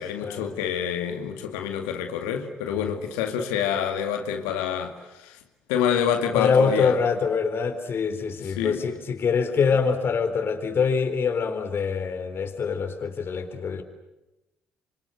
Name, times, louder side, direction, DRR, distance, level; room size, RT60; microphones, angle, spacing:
voice 1, 0.0-5.4 5.7-6.9 8.4-8.8, left 8 dB, 80° left, 5 dB, 2.2 m, -27 dB
voice 2, 6.3-13.8, left 5 dB, 50° left, 7 dB, 4.1 m, -24 dB
26.5 x 26.0 x 8.1 m, 0.97 s
hypercardioid pair, 50°, 5 cm